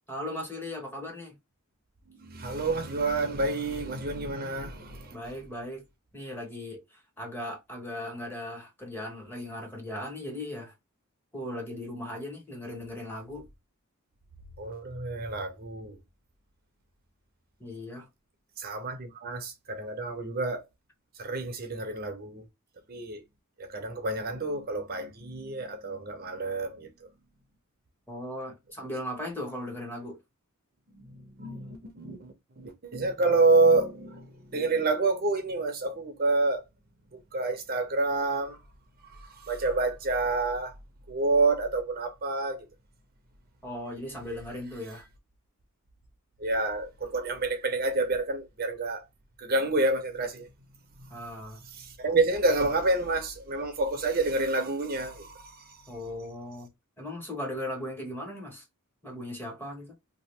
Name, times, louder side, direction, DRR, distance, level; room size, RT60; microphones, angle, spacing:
voice 1, 0.1-1.3 5.1-5.8 6.1-6.8 7.2-10.7 11.3-13.4 17.6-18.0 28.1-30.1 43.6-45.0 51.1-51.6 55.9-56.7 57.0-58.5 59.0-59.9, left 1 dB, 10° left, 1.0 m, -37 dB
voice 2, 2.1-5.1 14.6-16.0 18.6-20.6 21.2-22.4 22.9-23.2 23.6-27.1 31.0-36.6 37.1-38.6 39.0-40.7 41.1-42.7 46.4-49.0 49.4-50.5 51.7-55.8, right 3 dB, 45° right, 0.6 m, -28 dB
2.8 x 2.4 x 3.1 m
head